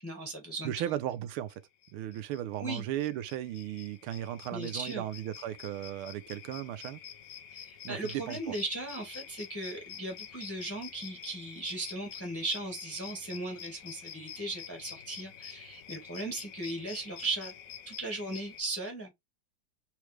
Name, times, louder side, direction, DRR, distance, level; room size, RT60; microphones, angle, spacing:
voice 1, 0.0-0.9 2.6-2.9 4.5-5.0 7.7-17.5 17.9-19.1, right 2 dB, 10° left, 1.0 m, -37 dB
voice 2, 0.6-1.5 1.9-7.0 7.8-8.5, right 12 dB, 80° right, 1.5 m, -36 dB
sound 1, 1.5-1.6 1.8-18.6, left 9 dB, 65° left, 0.8 m, -48 dB
4.2 x 3.2 x 3.2 m
omnidirectional pair, 2.3 m